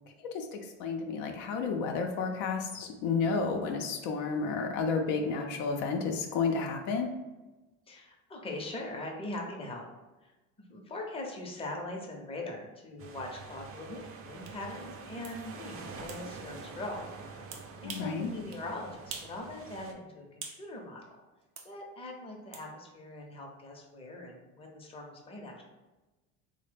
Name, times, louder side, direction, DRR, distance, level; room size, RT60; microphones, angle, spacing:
voice 1, 0.2-7.1 17.8-18.3, left 4 dB, 70° left, 3 dB, 0.5 m, -31 dB
voice 2, 7.9-9.9 10.2-10.3 10.6-17.4 17.8-21.0 21.6-25.6, left 2 dB, 15° left, 0 dB, 0.6 m, -41 dB
sound 1, 13.0-19.9, right 4 dB, 35° right, 0.5 m, -46 dB
sound 2, 14.4-14.6 15.2-15.4 16.1-16.2 17.5-18.1 18.5-18.6 19.1-19.4 19.7-20.6 21.6-21.7 22.5-22.7, right 6 dB, 80° right, 0.6 m, -44 dB
3.0 x 2.1 x 3.3 m, 1.1 s
supercardioid pair, 85°, 38 cm